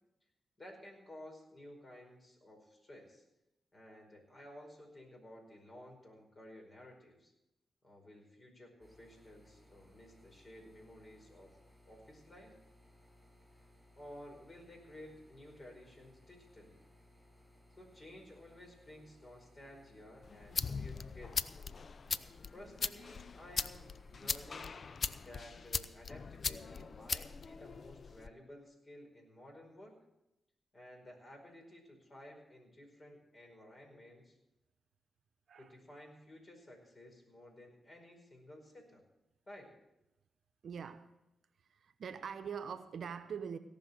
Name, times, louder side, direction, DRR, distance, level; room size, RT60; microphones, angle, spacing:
voice 1, 0.6-3.2 3.7-7.3 7.8-11.6 11.8-12.6 14.0-16.8 17.7-21.5 22.5-24.8 25.2-29.9 30.7-34.4 35.5-39.0 39.5-39.7, left 1 dB, 40° left, 4.9 m, -54 dB
sound 1, 8.8-24.6, left 1 dB, 5° right, 5.3 m, -64 dB
sound 2, 20.2-28.3, left 5 dB, 55° left, 0.5 m, -40 dB
voice 2, 40.6-41.1 41.7-43.6, right 7 dB, 70° right, 0.8 m, -43 dB
17.5 x 6.0 x 8.1 m
supercardioid pair, 40°, 0 cm